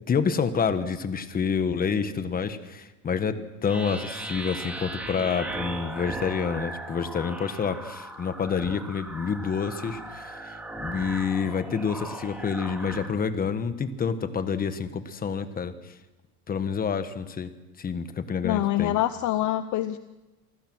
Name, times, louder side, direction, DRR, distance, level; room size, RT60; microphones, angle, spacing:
voice 1, 0.0-15.7 16.5-17.5 17.8-18.9, left 6 dB, 20° left, 11 dB, 1.3 m, -28 dB
sound 1, 3.6-13.1, right 1 dB, 5° right, 3.2 m, -38 dB
voice 2, 18.4-20.0, left 14 dB, 45° left, 12 dB, 0.8 m, -25 dB
28.0 x 19.5 x 6.2 m, 1.1 s
cardioid pair, 145°, 42 cm